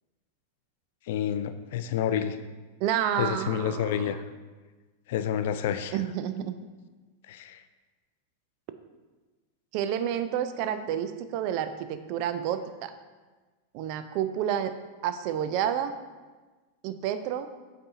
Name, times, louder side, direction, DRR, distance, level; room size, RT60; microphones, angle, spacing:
voice 1, 1.1-2.4 3.2-4.2 5.1-6.0 7.3-7.6, left 9 dB, 55° left, 11 dB, 0.3 m, -29 dB
voice 2, 2.8-4.0 5.9-6.6 9.7-12.9 13.7-14.8 15.0-15.9 16.8-17.5, right 10 dB, 45° right, 10 dB, 0.4 m, -29 dB
8.6 x 4.3 x 2.7 m, 1.3 s
figure-of-eight pair, 90°, 0 cm